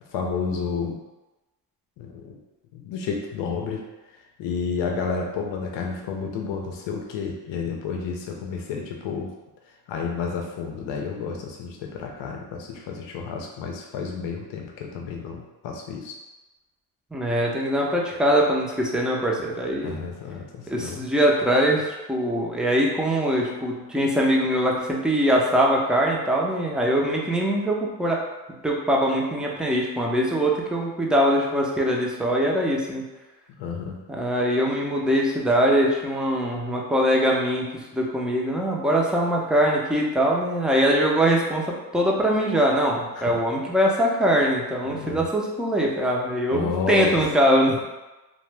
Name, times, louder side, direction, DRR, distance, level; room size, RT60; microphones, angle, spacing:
voice 1, 0.1-1.0 2.0-2.4 2.7-3.9 4.4-9.3 9.9-16.2 19.8-21.1 33.6-34.0 43.1-43.4 44.8-45.3 46.5-47.2, left 5 dB, 85° left, 1 dB, 0.6 m, -31 dB
voice 2, 17.1-20.0 20.7-28.2 28.6-33.0 34.2-37.6 37.9-41.6 41.9-47.8, equal, ahead, -2 dB, 0.4 m, -22 dB
2.7 x 2.1 x 3.2 m, 1.1 s
cardioid pair, 95°, 43 cm